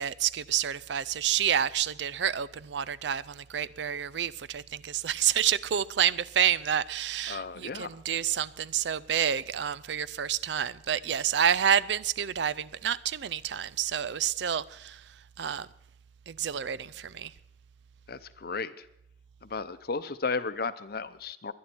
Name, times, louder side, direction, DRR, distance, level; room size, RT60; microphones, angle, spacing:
voice 1, 0.0-15.0 15.4-15.7 16.3-17.3, right 9 dB, 80° right, 0.5 m, -29 dB
voice 2, 7.3-7.9 18.1-18.9 19.4-21.5, left 4 dB, 60° left, 0.7 m, -34 dB
22.0 x 10.5 x 4.5 m
head